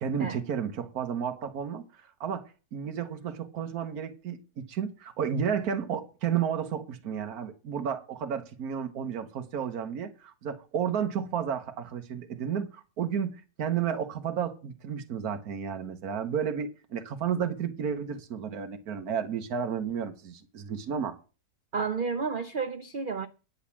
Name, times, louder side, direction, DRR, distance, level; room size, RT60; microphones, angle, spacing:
voice 1, 0.0-21.1, right 7 dB, 70° right, 1.6 m, -32 dB
voice 2, 21.7-23.3, right 5 dB, 55° right, 0.6 m, -31 dB
10.5 x 5.6 x 7.3 m
omnidirectional pair, 1.7 m